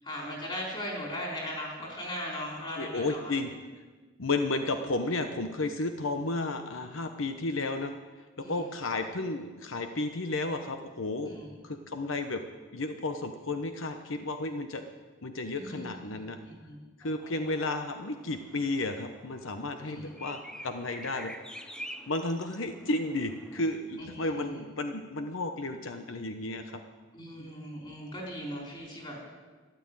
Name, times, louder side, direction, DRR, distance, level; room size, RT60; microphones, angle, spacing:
voice 1, 0.0-3.4 8.4-8.6 11.2-11.5 15.6-16.8 17.3-17.5 19.8-20.1 24.0-24.6 27.1-29.2, equal, 25° left, -2 dB, 4.5 m, -39 dB
voice 2, 2.8-3.5 4.2-7.9 8.5-11.3 11.6-12.4 12.7-14.8 15.2-16.4 17.0-21.3 22.1-26.8 27.4-27.5, left 2 dB, 80° left, 7 dB, 1.0 m, -32 dB
sound 1, 17.0-23.7, equal, 5° left, 0.6 m, -48 dB
13.0 x 12.0 x 8.9 m, 1.3 s
head